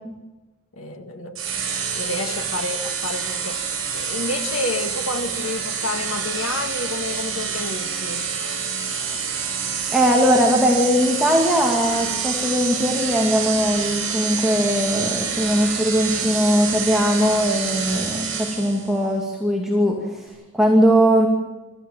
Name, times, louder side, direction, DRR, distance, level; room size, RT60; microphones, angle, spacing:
voice 1, 0.7-1.4 1.9-3.6 3.9-8.3, left 2 dB, 75° left, 2.0 m, -29 dB
sound 1, 1.3-18.9, right 6 dB, 65° right, 7.7 m, -27 dB
voice 2, 9.9-21.3, equal, ahead, 2.4 m, -20 dB
29.0 x 14.0 x 7.4 m
head